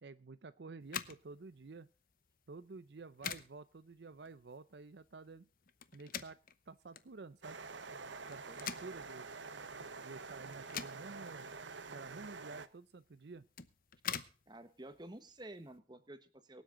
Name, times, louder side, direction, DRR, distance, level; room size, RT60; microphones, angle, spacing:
voice 1, 0.0-1.9 2.5-5.5 5.9-6.4 6.7-7.6 8.3-9.3 10.0-11.5 11.9-13.5, right 3 dB, 65° right, 14 dB, 0.6 m, -51 dB
sound 1, 0.8-15.8, left 8 dB, 50° left, 0.8 m, -48 dB
sound 2, 7.4-12.7, right 4 dB, 80° right, 1.0 m, -47 dB
voice 2, 14.5-16.6, right 1 dB, 25° right, 11 dB, 1.2 m, -51 dB
24.0 x 8.0 x 3.8 m, 0.38 s
head